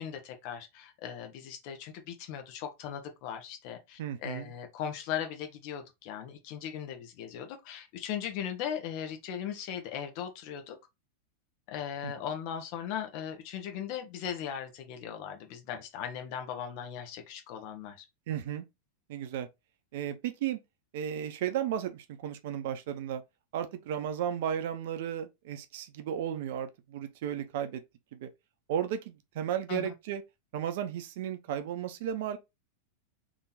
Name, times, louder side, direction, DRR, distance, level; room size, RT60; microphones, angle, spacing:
voice 1, 0.0-10.8 11.7-18.0 29.7-29.9, left 9 dB, 45° left, 1.2 m, -38 dB
voice 2, 4.0-4.5 12.0-12.1 18.3-18.6 19.1-19.5 19.9-20.6 20.9-23.2 23.5-27.8 28.1-28.3 28.7-30.2 30.5-32.4, right 9 dB, 50° right, 0.7 m, -34 dB
3.6 x 3.0 x 4.1 m
figure-of-eight pair, 90°, 0 cm